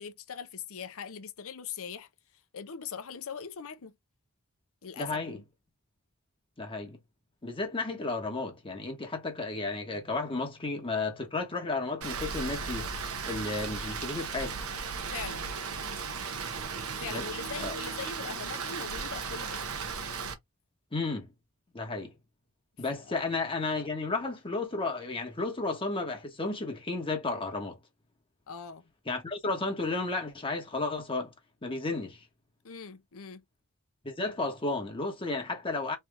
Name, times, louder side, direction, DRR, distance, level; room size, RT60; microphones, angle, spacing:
voice 1, 0.0-2.1 2.5-3.9 4.8-5.4 15.1-15.5 17.0-19.6 22.9-23.2 28.5-28.8 32.6-33.4, left 6 dB, 65° left, 0.7 m, -41 dB
voice 2, 5.0-5.4 6.6-7.0 7.4-14.6 17.1-17.2 17.6-17.7 20.9-21.3 21.7-22.1 22.8-27.8 29.1-31.3 31.6-32.2 34.0-36.0, left 3 dB, 25° left, 1.2 m, -33 dB
Rain, 12.0-20.3, right 5 dB, 70° right, 0.9 m, -36 dB
3.3 x 2.9 x 3.4 m
head